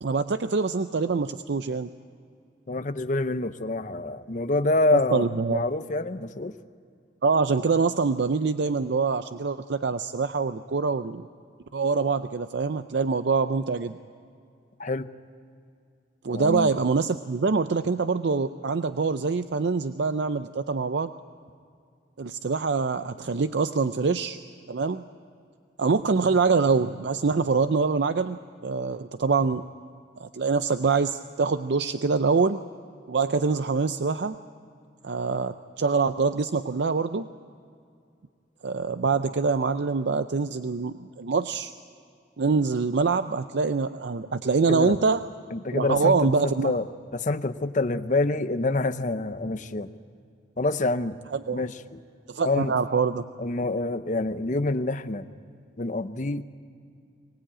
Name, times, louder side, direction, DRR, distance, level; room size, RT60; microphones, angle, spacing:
voice 1, 0.0-1.9 5.1-5.6 7.2-11.2 11.7-14.0 16.2-21.1 22.2-24.4 24.7-25.0 25.8-29.6 30.2-32.6 33.1-34.3 35.0-37.3 38.6-41.7 42.4-45.2 45.7-46.7 51.3-51.6 52.3-53.2, right 4 dB, 70° right, 10 dB, 0.5 m, -25 dB
voice 2, 2.7-6.5 14.8-15.1 16.3-16.7 44.7-45.0 45.5-46.9 47.1-49.9 50.6-51.2 51.5-52.0 52.4-52.8 53.4-55.3 55.8-56.4, left 2 dB, 45° left, 11 dB, 0.8 m, -27 dB
23.5 x 19.0 x 8.8 m, 2.3 s
head